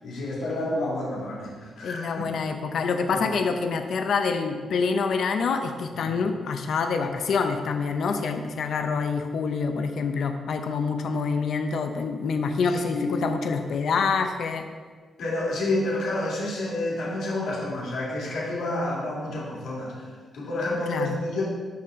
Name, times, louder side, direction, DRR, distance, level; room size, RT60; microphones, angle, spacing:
voice 1, 0.0-2.3 3.1-3.2 5.9-6.1 12.6-13.2 15.2-19.9 20.3-21.4, left 1 dB, 80° left, -4 dB, 2.3 m, -29 dB
voice 2, 1.8-14.7 20.9-21.2, left 5 dB, 65° left, 6 dB, 0.6 m, -26 dB
12.0 x 4.2 x 3.7 m, 1.5 s
wide cardioid pair, 175°, 0 cm